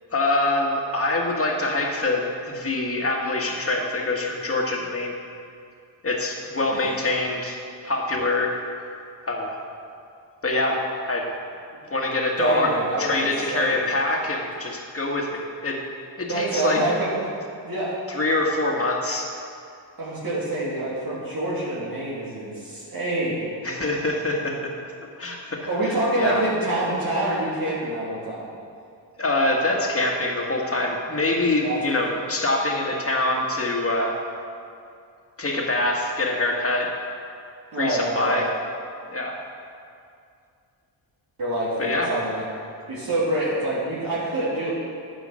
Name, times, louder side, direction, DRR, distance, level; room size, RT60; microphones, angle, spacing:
voice 1, 0.1-5.1 6.0-8.5 9.2-9.6 10.4-11.3 11.9-15.8 16.2-16.8 18.1-19.3 23.6-24.7 25.2-26.4 29.2-34.2 35.4-36.9 37.8-38.5 39.1-39.4 41.8-42.1, left 2 dB, 30° left, 0 dB, 1.8 m, -25 dB
voice 2, 12.4-13.8 16.3-17.2 17.6-18.0 20.0-23.4 25.7-28.5 31.6-31.8 32.1-32.2 37.7-38.5 41.4-42.4 42.9-44.7, right 1 dB, 50° right, -8 dB, 2.5 m, -26 dB
10.0 x 6.4 x 6.3 m, 2.4 s
cardioid pair, 75°, 45 cm